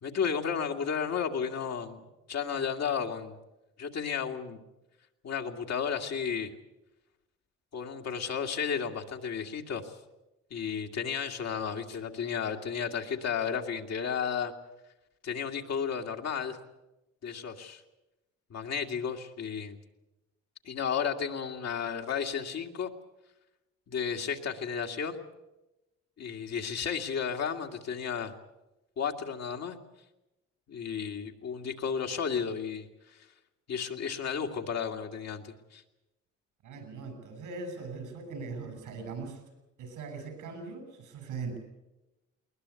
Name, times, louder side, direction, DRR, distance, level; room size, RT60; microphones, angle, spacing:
voice 1, 0.0-3.4 3.8-4.6 5.2-6.5 7.7-10.0 10.5-14.5 15.2-16.6 17.2-17.8 18.5-19.8 20.6-22.9 23.9-25.2 26.2-28.3 29.0-29.8 30.7-33.3 33.7-35.8, left 7 dB, 60° left, 3 dB, 2.2 m, -33 dB
voice 2, 36.6-39.4 39.8-41.6, right 4 dB, 85° right, 7 dB, 6.6 m, -40 dB
21.0 x 20.0 x 8.3 m, 0.99 s
cardioid pair, 90°, 30 cm